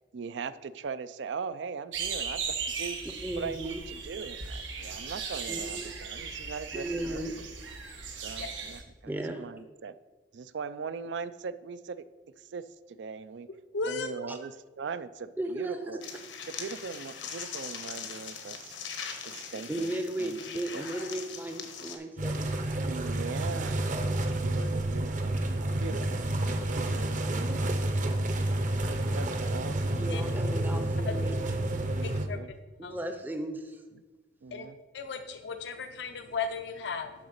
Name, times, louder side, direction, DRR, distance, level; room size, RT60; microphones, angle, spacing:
voice 1, 0.1-2.4 2.8-3.0 3.4-7.2 8.2-9.9 10.3-12.0 12.4-13.5 13.9-16.0 16.5-18.8 19.2-19.9 20.2-20.4 20.7-20.8 22.8-23.9 24.4-25.3 25.8-26.2 26.7-27.3 28.0-28.3 28.6-30.0 31.2-31.3 32.0-32.1 32.3-32.5 34.4-34.8, right 5 dB, 75° right, 14 dB, 0.4 m, -40 dB
sound 1, 1.9-8.8, right 5 dB, 90° right, 1.3 m, -37 dB
voice 2, 3.2-3.8 5.5-6.0 6.7-7.4 9.1-9.4 14.3-14.4 15.4-15.8 16.6-16.7 19.7-22.8 24.0-24.3 30.0-31.7 32.8-33.8, right 1 dB, 10° right, 6 dB, 0.5 m, -36 dB
voice 3, 13.7-14.1 24.6-24.7 30.1-30.2 31.1-31.2 32.0-32.4 32.8-33.0 34.5-34.7 34.9-37.1, left 4 dB, 70° left, 8 dB, 0.5 m, -35 dB
sound 2, 16.0-21.9, left 6 dB, 85° left, 1.2 m, -41 dB
sound 3, 22.2-32.3, right 1 dB, 45° right, 0.8 m, -29 dB
11.0 x 4.0 x 6.5 m, 1.3 s
head